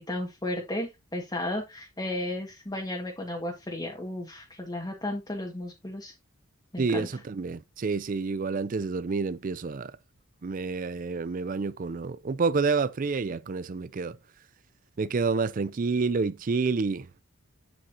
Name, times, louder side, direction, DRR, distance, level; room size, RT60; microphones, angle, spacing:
voice 1, 0.0-6.1 6.7-7.1, left 1 dB, 20° left, 1.7 m, -34 dB
voice 2, 6.8-10.0 10.4-14.2 15.0-17.1, right 4 dB, 40° right, 0.4 m, -28 dB
8.4 x 7.9 x 2.8 m
head